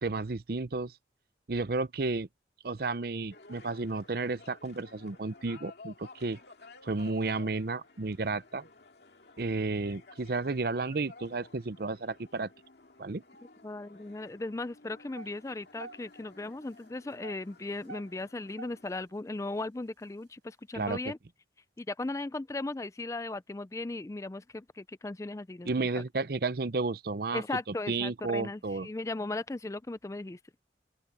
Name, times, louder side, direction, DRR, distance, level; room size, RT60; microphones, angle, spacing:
voice 1, 0.0-0.9 1.5-2.3 2.6-6.4 6.8-8.6 9.4-12.5 13.0-13.2 20.7-21.0 25.7-27.4 27.9-28.9, right 3 dB, 55° right, 0.7 m, -32 dB
sound 1, 3.3-19.0, left 3 dB, 65° left, 2.4 m, -54 dB
voice 2, 13.6-21.2 21.8-25.9 27.3-30.4, left 2 dB, 15° left, 0.4 m, -37 dB
sound 2, 15.1-16.4 16.9-19.1 19.7-19.8 20.4-20.5, right 3 dB, 85° right, 4.9 m, -46 dB
open air
head